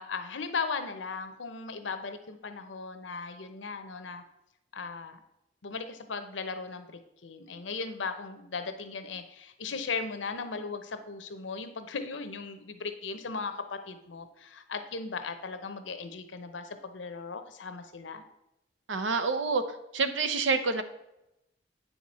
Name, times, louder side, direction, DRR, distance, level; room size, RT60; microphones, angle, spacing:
voice 1, 0.0-4.2 4.7-5.2 5.6-18.2, left 4 dB, 85° left, 8 dB, 0.8 m, -37 dB
voice 2, 18.9-19.6 19.9-20.8, right 4 dB, 90° right, 10 dB, 0.7 m, -27 dB
8.3 x 5.9 x 4.2 m, 0.88 s
head